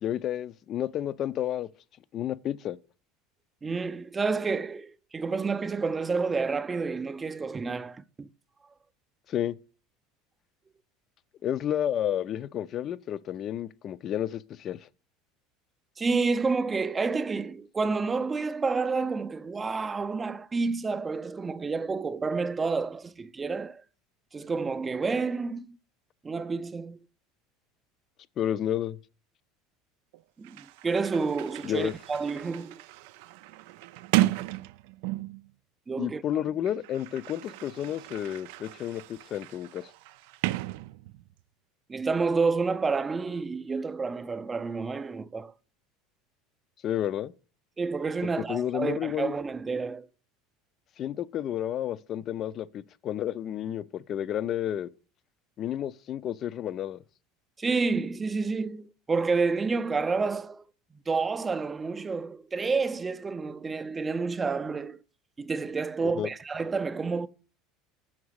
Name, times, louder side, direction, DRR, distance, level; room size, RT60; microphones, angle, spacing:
voice 1, 0.0-1.7 2.1-2.8 9.3-9.5 11.4-14.8 28.4-29.0 31.6-31.9 36.0-39.9 46.8-47.3 48.2-49.4 51.0-54.9 55.6-57.0 66.2-66.3, left 11 dB, 40° left, 0.5 m, -31 dB
voice 2, 3.6-8.3 16.0-23.8 24.3-25.8 26.2-27.0 30.4-32.8 34.2-34.4 35.9-36.4 41.9-45.5 47.8-50.1 57.6-60.6 60.9-65.0 65.4-67.3, right 4 dB, 20° right, 0.5 m, -29 dB
Sliding door, 30.1-30.2 30.4-35.5 36.4-41.4, right 17 dB, 75° right, 0.4 m, -34 dB
7.2 x 5.9 x 6.3 m
supercardioid pair, 130°, 0 cm